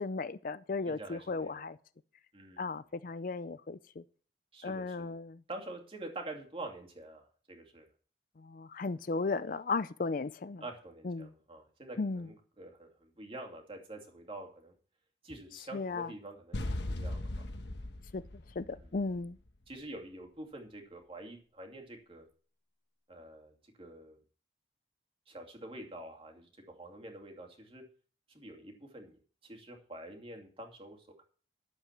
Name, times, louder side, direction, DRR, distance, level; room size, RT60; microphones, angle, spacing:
voice 1, 0.0-1.8 2.6-4.0 4.6-5.4 8.4-10.6 11.0-11.3 12.0-12.3 15.7-16.1 18.1-18.2 18.6-19.4, left 3 dB, 45° left, 0.4 m, -35 dB
voice 2, 0.9-1.6 2.3-2.7 4.5-5.1 5.5-7.9 10.6-14.7 15.2-17.4 18.7-18.9 19.7-22.3 23.1-24.2 25.3-27.8 28.3-29.2 29.4-31.2, right 2 dB, 30° right, 2.5 m, -47 dB
sound 1, 16.5-19.5, left 1 dB, 70° left, 1.2 m, -38 dB
11.5 x 8.0 x 5.9 m
head